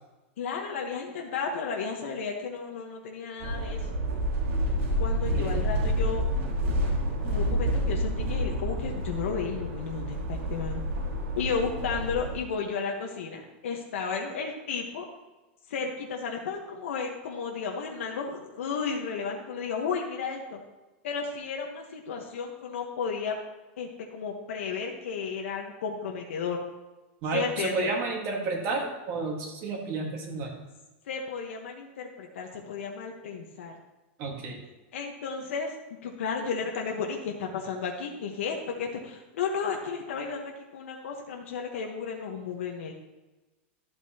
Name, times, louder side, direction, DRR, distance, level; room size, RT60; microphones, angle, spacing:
voice 1, 0.4-3.8 5.0-6.2 7.2-10.8 11.3-15.0 15.7-20.6 21.0-23.4 23.8-26.6 27.3-27.9 31.0-33.7 34.9-35.7 36.0-42.9, left 5 dB, 85° left, 1 dB, 1.2 m, -33 dB
sound 1, 3.4-12.3, equal, 90° right, 2.1 m, -29 dB
voice 2, 27.2-30.5 34.2-34.6, right 3 dB, 40° right, 0 dB, 1.6 m, -31 dB
12.5 x 8.1 x 2.9 m, 1.1 s
supercardioid pair, 160°, 7 cm